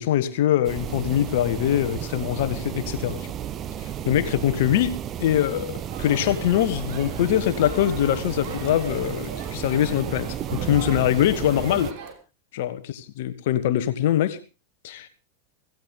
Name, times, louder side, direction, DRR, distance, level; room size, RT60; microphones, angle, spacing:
voice 1, 0.0-3.3 3.8-11.9 12.5-14.4 14.8-15.1, left 11 dB, 55° left, 12 dB, 1.4 m, -23 dB
sound 1, 0.6-11.9, right 10 dB, 30° right, 1.0 m, -33 dB
Crowd, 5.9-12.1, right 5 dB, 50° right, 3.5 m, -40 dB
17.5 x 15.0 x 3.8 m, 0.31 s
figure-of-eight pair, 90°, 0 cm